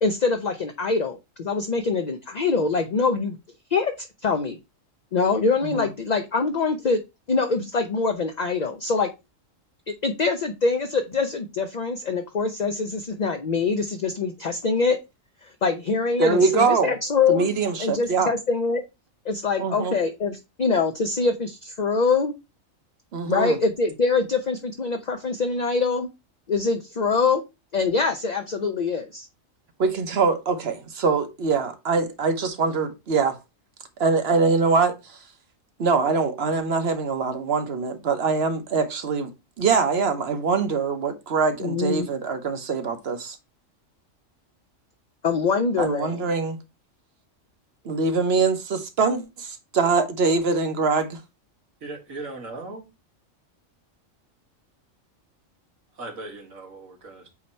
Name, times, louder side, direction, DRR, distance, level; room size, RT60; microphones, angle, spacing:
voice 1, 0.0-3.4 3.7-4.6 5.1-7.0 7.3-9.1 9.9-15.0 15.4-17.5 17.8-18.8 19.2-22.3 23.3-26.1 26.5-27.4 27.7-29.3 41.6-42.1 45.2-46.3, left 4 dB, 45° left, 0.6 m, -24 dB
voice 2, 16.2-16.9 17.3-18.3 19.6-20.0 23.1-23.6 29.8-33.4 34.0-35.2 35.8-39.3 39.6-43.4 45.8-46.6 47.8-51.2, right 4 dB, 55° right, 1.2 m, -23 dB
voice 3, 51.8-52.9 56.0-57.3, right 2 dB, 80° right, 2.3 m, -38 dB
8.5 x 2.9 x 4.3 m
omnidirectional pair, 1.4 m